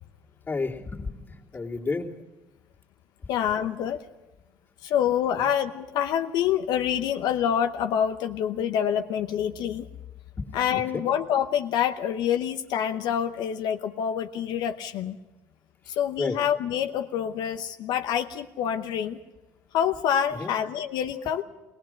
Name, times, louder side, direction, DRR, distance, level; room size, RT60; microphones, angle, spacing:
voice 1, 0.5-2.1 5.4-5.5 10.4-10.6 10.9-11.1 16.2-16.4 20.4-20.5, left 3 dB, 25° left, -3 dB, 2.7 m, -31 dB
voice 2, 3.3-4.1 4.8-9.9 10.5-15.2 15.9-19.2 19.7-21.4, left 9 dB, 75° left, 7 dB, 0.8 m, -26 dB
20.0 x 19.5 x 7.6 m, 1.2 s
cardioid pair, 120°, 7 cm